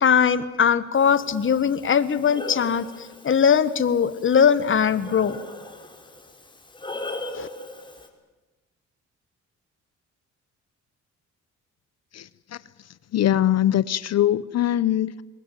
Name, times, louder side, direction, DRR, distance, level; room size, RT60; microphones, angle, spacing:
voice 1, 0.0-2.9 3.2-5.4 7.3-7.5, left 7 dB, 40° left, 15 dB, 1.5 m, -20 dB
Breathing, 0.9-8.1, left 2 dB, 15° left, 3.8 m, -39 dB
voice 2, 13.1-15.2, left 12 dB, 60° left, 18 dB, 0.7 m, -21 dB
24.0 x 20.5 x 9.2 m, 1.1 s
cardioid pair, 90°, 30 cm